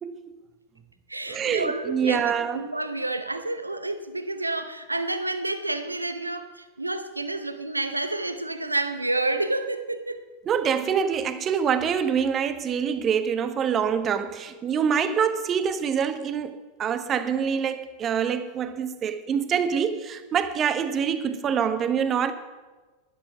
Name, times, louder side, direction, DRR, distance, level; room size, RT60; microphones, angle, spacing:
voice 1, 0.0-0.3 1.3-2.7 10.5-22.3, right 7 dB, 30° right, 0.9 m, -25 dB
voice 2, 1.1-10.2, right 2 dB, 90° right, 0.7 m, -29 dB
12.0 x 11.0 x 5.8 m
figure-of-eight pair, 90°, 0 cm